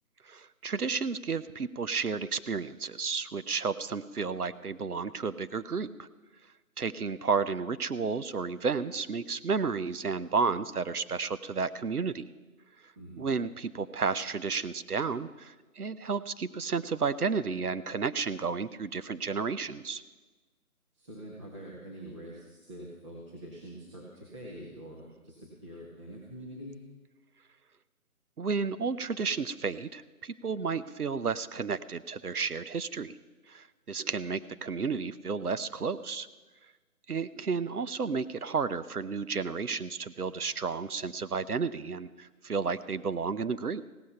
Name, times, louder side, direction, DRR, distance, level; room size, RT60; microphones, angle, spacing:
voice 1, 0.2-6.1 6.8-12.3 12.8-20.0 28.4-33.2 33.5-36.3 37.1-43.9, right 5 dB, 85° right, 14 dB, 0.8 m, -32 dB
voice 2, 12.9-13.3 20.9-26.8, equal, 20° right, -4 dB, 1.6 m, -45 dB
16.5 x 11.5 x 5.8 m, 1.2 s
figure-of-eight pair, 155°, 44 cm